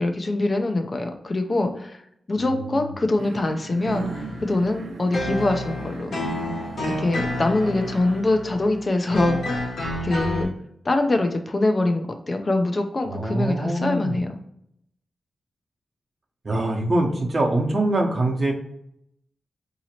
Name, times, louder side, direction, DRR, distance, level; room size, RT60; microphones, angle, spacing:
voice 1, 0.0-2.0 2.3-4.1 4.4-6.1 7.0-9.7 10.0-10.5 10.8-14.4, left 2 dB, 40° left, 5 dB, 0.5 m, -24 dB
voice 2, 2.4-2.9 13.1-14.2 16.4-18.5, right 1 dB, 45° right, -1 dB, 0.9 m, -24 dB
sound 1, 3.2-8.2, right 4 dB, 85° right, 0.4 m, -36 dB
sound 2, 3.8-10.4, left 1 dB, 85° left, 1.1 m, -30 dB
3.9 x 2.8 x 2.9 m, 0.74 s
wide cardioid pair, 95°, 0 cm